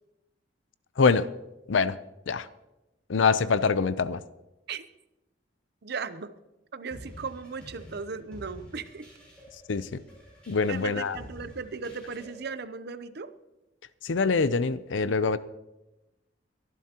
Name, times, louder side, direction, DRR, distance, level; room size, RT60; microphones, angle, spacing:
voice 1, 1.0-1.3 1.7-2.0 2.3-2.5 3.1-4.2 9.7-10.0 10.5-11.2 14.0-15.4, left 4 dB, 85° left, 15 dB, 0.6 m, -24 dB
voice 2, 5.8-6.3 6.7-9.1 10.7-13.3, right 5 dB, 60° right, 13 dB, 0.7 m, -37 dB
sound 1, 6.9-12.6, equal, 5° left, 6.1 m, -49 dB
23.5 x 11.0 x 2.9 m, 0.98 s
head